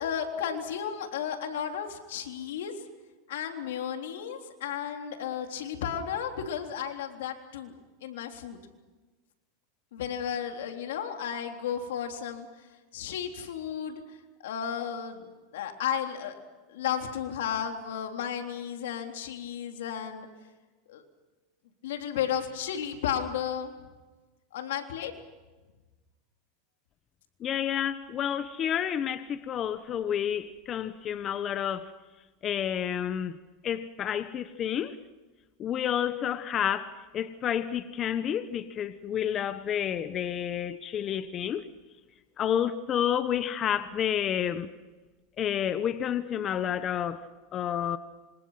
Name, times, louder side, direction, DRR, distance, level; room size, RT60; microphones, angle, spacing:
voice 1, 0.0-2.7 3.3-8.6 9.9-12.5 12.9-14.0 14.4-16.3 16.7-20.3 20.9-21.0 21.8-23.7 24.5-25.1, left 8 dB, 85° left, 4 dB, 3.6 m, -33 dB
voice 2, 27.4-31.9 32.4-35.0 35.6-41.7 42.4-44.7 45.4-47.3 47.5-48.0, left 9 dB, 35° left, 11 dB, 1.2 m, -30 dB
28.0 x 26.0 x 5.9 m, 1.2 s
supercardioid pair, 125°, 0 cm